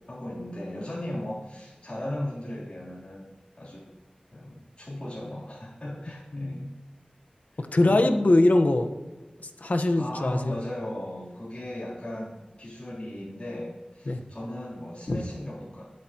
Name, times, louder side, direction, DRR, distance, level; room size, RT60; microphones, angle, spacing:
voice 1, 0.1-3.3 3.6-3.9 4.3-6.7 7.5-8.1 10.0-15.9, left 1 dB, 40° left, -9 dB, 3.5 m, -37 dB
voice 2, 6.3-6.6 7.7-8.9 9.6-10.6 14.1-14.2 15.1-15.2, left 2 dB, 70° left, 5 dB, 1.2 m, -22 dB
22.0 x 8.3 x 3.0 m, 1.3 s
wide cardioid pair, 50°, 3 cm